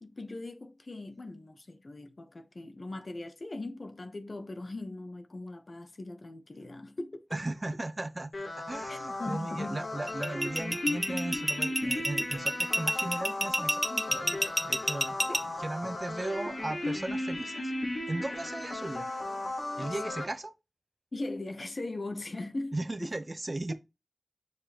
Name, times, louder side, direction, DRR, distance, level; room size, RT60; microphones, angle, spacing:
voice 1, 0.0-7.4 8.9-9.8 15.3-15.4 21.1-23.1, left 2 dB, 65° left, 1.0 m, -40 dB
voice 2, 7.3-8.3 8.6-15.1 15.4-17.7 18.1-19.1 19.8-20.5 22.7-23.7, right 2 dB, 45° right, 0.8 m, -37 dB
sound 1, 8.3-20.2, left 1 dB, 90° left, 3.5 m, -36 dB
sound 2, 10.1-15.4, right 1 dB, 15° right, 1.0 m, -28 dB
6.7 x 5.1 x 2.9 m
wide cardioid pair, 65°, 0 cm